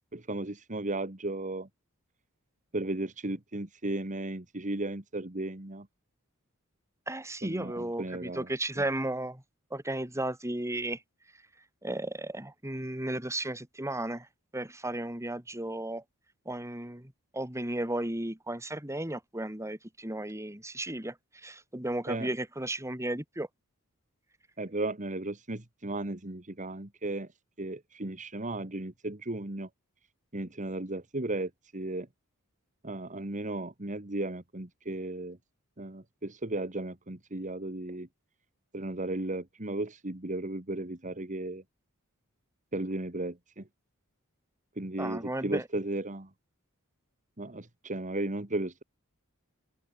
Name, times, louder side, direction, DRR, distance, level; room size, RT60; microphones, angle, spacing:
voice 1, 0.1-1.7 2.7-5.9 7.4-8.5 8.8-8.9 22.1-22.3 24.6-27.3 27.6-29.7 30.3-32.1 32.8-35.4 35.8-38.1 38.7-41.6 42.7-43.7 44.8-46.3 47.4-48.8, right 2 dB, 35° right, 2.1 m, -35 dB
voice 2, 7.1-9.4 9.7-11.0 11.8-14.3 14.5-16.0 16.4-23.5 45.0-45.7, right 1 dB, 15° right, 3.3 m, -34 dB
open air
head